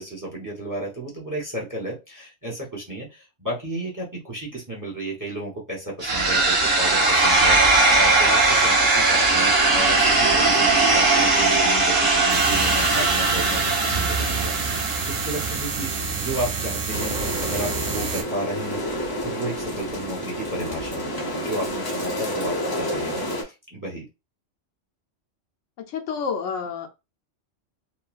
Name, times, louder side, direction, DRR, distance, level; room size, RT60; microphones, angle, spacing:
voice 1, 0.0-17.2 17.4-24.0, right 1 dB, 20° right, -3 dB, 0.7 m, -33 dB
sound 1, 6.0-16.0, right 3 dB, 55° right, 1.2 m, -19 dB
sound 2, 12.3-18.2, right 5 dB, 90° right, 1.1 m, -28 dB
sound 3, 16.9-23.4, equal, 35° left, 0.4 m, -29 dB
voice 2, 25.8-26.9, left 6 dB, 75° left, 5 dB, 0.9 m, -29 dB
3.1 x 2.1 x 2.4 m, 0.25 s
omnidirectional pair, 1.3 m